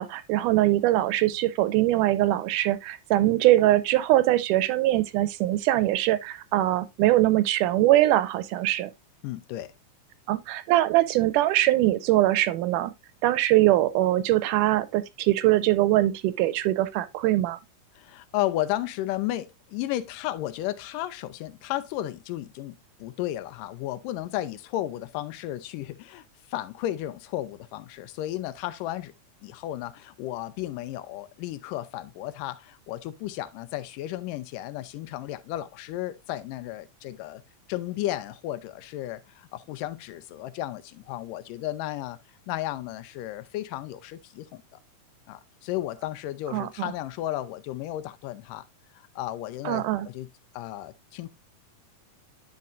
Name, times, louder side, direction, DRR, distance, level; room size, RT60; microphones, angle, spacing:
voice 1, 0.0-8.9 10.3-12.9 13.2-17.6 46.5-46.9 49.7-50.1, right 15 dB, 80° right, 2.1 m, -22 dB
voice 2, 9.2-9.7 18.0-29.1 29.4-37.4 37.7-42.2 42.5-44.6 45.3-48.7 49.2-50.3 50.5-51.3, left 14 dB, 90° left, 2.3 m, -33 dB
10.0 x 5.5 x 2.5 m
omnidirectional pair, 3.7 m